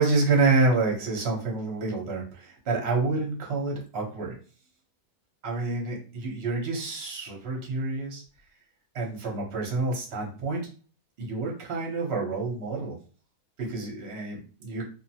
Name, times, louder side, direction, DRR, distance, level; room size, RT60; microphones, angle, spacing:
voice 1, 0.0-4.3 5.4-8.2 8.9-10.6 11.2-13.0 13.6-14.8, right 3 dB, 50° right, -1 dB, 0.9 m, -28 dB
2.8 x 2.1 x 2.7 m, 0.39 s
omnidirectional pair, 1.7 m